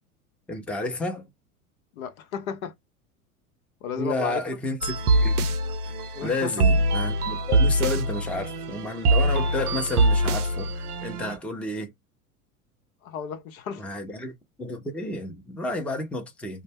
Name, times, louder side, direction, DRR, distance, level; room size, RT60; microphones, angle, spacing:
voice 1, 0.5-1.3 3.9-5.3 6.2-11.9 13.8-14.3 14.6-16.6, left 2 dB, 5° left, 0.5 m, -31 dB
voice 2, 2.0-2.7 3.8-4.4 6.2-6.5 13.0-13.8, left 7 dB, 70° left, 0.7 m, -33 dB
sound 1, 4.8-11.4, right 1 dB, 85° right, 0.5 m, -23 dB
2.2 x 2.0 x 3.2 m
hypercardioid pair, 85°, 44 cm